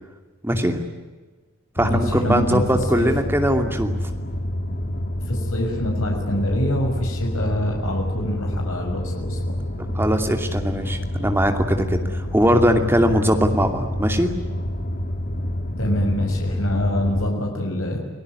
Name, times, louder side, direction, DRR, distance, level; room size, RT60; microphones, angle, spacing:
voice 1, 0.4-0.8 1.8-3.9 9.9-14.3, equal, 10° right, 5 dB, 2.7 m, -20 dB
voice 2, 1.8-2.6 3.0-3.1 5.3-9.6 15.8-18.0, left 1 dB, 80° left, 1 dB, 6.2 m, -25 dB
sound 1, 1.8-17.3, equal, 40° left, 2.4 m, -28 dB
29.5 x 19.5 x 9.7 m, 1.3 s
head